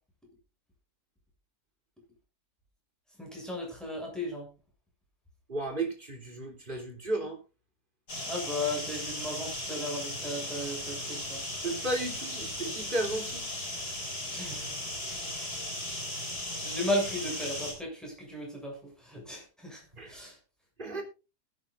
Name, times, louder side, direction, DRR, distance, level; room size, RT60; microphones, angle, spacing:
voice 1, 3.2-4.5 8.3-11.5 14.3-14.9 16.6-20.4, left 1 dB, ahead, -1 dB, 7.2 m, -35 dB
voice 2, 5.5-7.4 11.6-13.5 19.9-20.2 20.8-21.0, right 2 dB, 30° right, 2 dB, 3.6 m, -34 dB
sound 1, 8.1-17.7, left 1 dB, 70° left, 5.6 m, -37 dB
21.5 x 9.9 x 2.5 m, 0.30 s
omnidirectional pair, 1.7 m